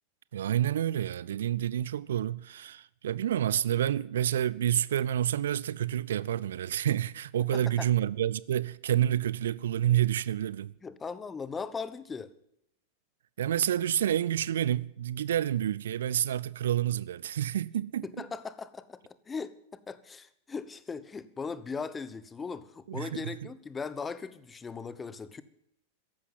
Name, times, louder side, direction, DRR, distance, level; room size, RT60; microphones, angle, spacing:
voice 1, 0.3-10.7 13.4-18.1 22.9-23.2, right 11 dB, 60° right, 0.5 m, -29 dB
voice 2, 7.5-7.9 10.8-12.3 18.0-25.4, left 5 dB, 15° left, 1.0 m, -39 dB
14.0 x 11.5 x 7.6 m
figure-of-eight pair, 90°, 0 cm